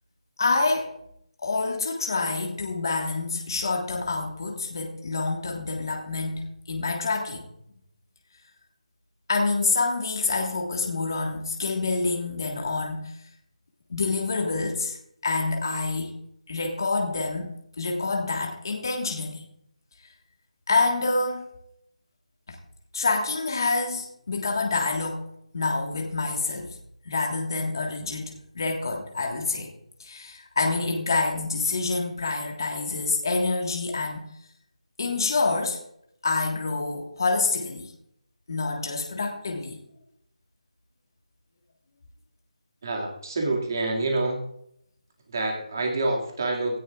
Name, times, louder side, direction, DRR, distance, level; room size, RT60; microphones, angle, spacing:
voice 1, 0.4-0.9 1.4-7.4 9.3-13.2 13.9-15.0 15.2-16.2 16.5-19.5 20.7-21.5 22.5-22.6 22.9-25.3 25.5-26.8 27.0-29.7 30.0-34.2 35.0-35.8 36.2-37.9 38.5-39.8, left 3 dB, 30° left, 1 dB, 1.6 m, -27 dB
voice 2, 42.8-44.4 45.3-46.8, right 2 dB, 30° right, 0 dB, 2.2 m, -27 dB
17.0 x 14.0 x 2.5 m, 0.74 s
figure-of-eight pair, 180°, 4 cm